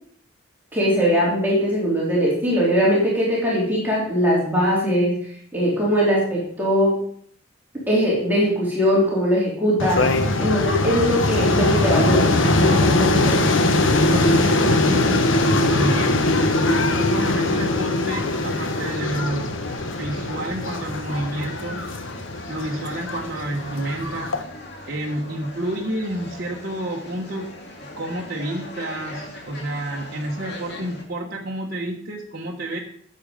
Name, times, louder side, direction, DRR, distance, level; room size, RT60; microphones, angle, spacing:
voice 1, 0.7-6.9 7.9-10.1 10.4-13.4, equal, 10° right, -6 dB, 3.6 m, -21 dB
sound 1, 9.8-24.4, left 2 dB, 70° left, 1.3 m, -21 dB
voice 2, 12.6-13.0 14.1-16.4 17.0-19.5 19.8-21.9 22.5-24.5 24.9-27.5 27.8-32.8, right 1 dB, 50° right, -2 dB, 1.4 m, -29 dB
sound 2, 13.5-31.0, left 1 dB, 55° left, 2.5 m, -39 dB
14.0 x 7.9 x 5.2 m, 0.62 s
head